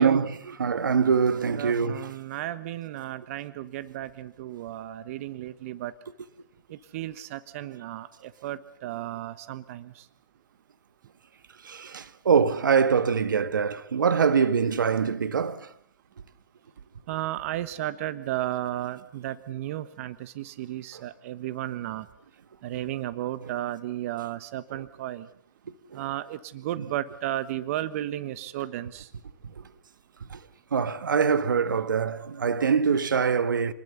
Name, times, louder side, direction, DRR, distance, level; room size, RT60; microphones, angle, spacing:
voice 1, 0.0-2.0 11.6-15.7 24.7-24.8 25.9-26.0 30.3-30.4 30.7-33.7, right 6 dB, 80° right, 1.7 m, -24 dB
voice 2, 1.5-5.9 6.7-10.0 17.1-22.1 22.6-25.3 25.9-29.1, right 13 dB, 45° right, 1.3 m, -34 dB
28.5 x 20.5 x 7.1 m
hypercardioid pair, 135°, 10 cm